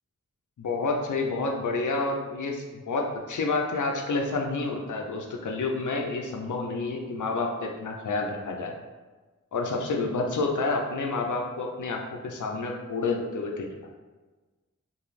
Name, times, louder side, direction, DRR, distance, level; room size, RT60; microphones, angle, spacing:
voice 1, 0.6-8.7 9.5-13.7, left 3 dB, 90° left, 1 dB, 0.5 m, -29 dB
2.6 x 2.5 x 3.1 m, 1.3 s
wide cardioid pair, 45°, 29 cm